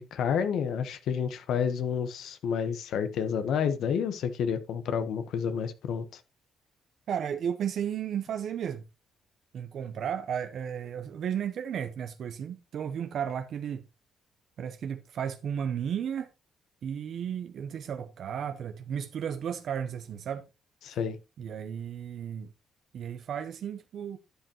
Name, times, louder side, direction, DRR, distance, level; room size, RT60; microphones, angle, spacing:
voice 1, 0.0-6.2 20.8-21.2, left 7 dB, 75° left, 1.1 m, -30 dB
voice 2, 7.1-8.8 9.5-13.8 14.6-16.3 16.8-20.5 21.4-22.5 22.9-24.2, right 8 dB, 65° right, 0.7 m, -34 dB
11.5 x 7.7 x 2.9 m
cardioid pair, 90°, 0 cm